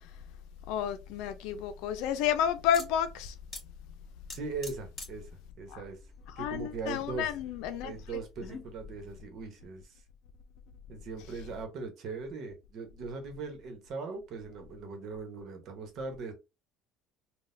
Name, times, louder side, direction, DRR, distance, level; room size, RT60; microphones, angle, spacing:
voice 1, 0.7-3.3 5.7-5.8 6.4-7.9, left 9 dB, 75° left, 0.5 m, -31 dB
sound 1, 2.6-8.9, left 3 dB, 25° left, 1.8 m, -48 dB
voice 2, 4.3-5.3 5.6-6.0 6.4-7.3 7.8-10.0 10.9-16.3, right 4 dB, 55° right, 1.1 m, -40 dB
3.9 x 2.3 x 2.7 m
cardioid pair, 120°, 0 cm